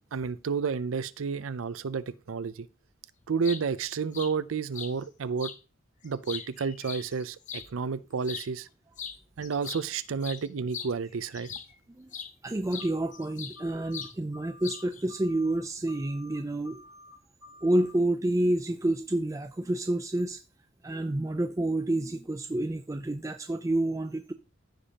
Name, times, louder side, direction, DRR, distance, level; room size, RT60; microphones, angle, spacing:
voice 1, 0.1-2.7 3.3-5.5 6.0-8.7 9.4-11.5, right 5 dB, 90° right, 0.5 m, -31 dB
sound 1, 3.2-3.6 4.1-4.3 4.7-4.9 5.4-5.6 6.0-7.7 8.2-8.5 9.0-9.2 9.4-11.7 12.1-12.3 12.7-13.6 13.9-14.1 14.6-15.0, left 7 dB, 40° left, 0.7 m, -40 dB
voice 2, 12.4-16.8 17.6-20.4 20.8-24.3, right 1 dB, 15° right, 0.4 m, -29 dB
sound 2, 12.8-13.3 13.5-14.0 14.3-14.8 15.1-15.6 15.9-16.4 16.6-17.1 17.4-17.9, left 1 dB, 85° left, 4.7 m, -51 dB
15.0 x 5.1 x 2.9 m
head